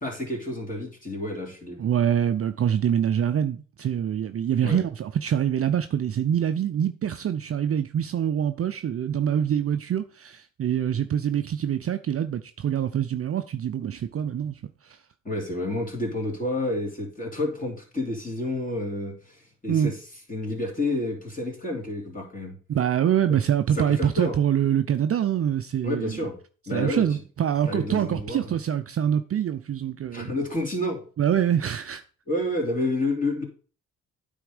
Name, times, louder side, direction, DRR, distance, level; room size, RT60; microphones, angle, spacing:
voice 1, 0.0-1.8 4.6-4.8 15.2-20.0 20.3-22.6 23.3-23.4 23.7-24.4 25.8-26.4 26.7-27.2 27.7-28.6 30.1-31.0 32.3-33.4, left 1 dB, 20° left, 3.2 m, -29 dB
voice 2, 1.8-15.0 19.7-19.9 22.7-26.1 26.7-30.3 31.2-32.0, right 9 dB, 40° right, 0.5 m, -25 dB
9.1 x 3.6 x 5.0 m
hypercardioid pair, 50°, 37 cm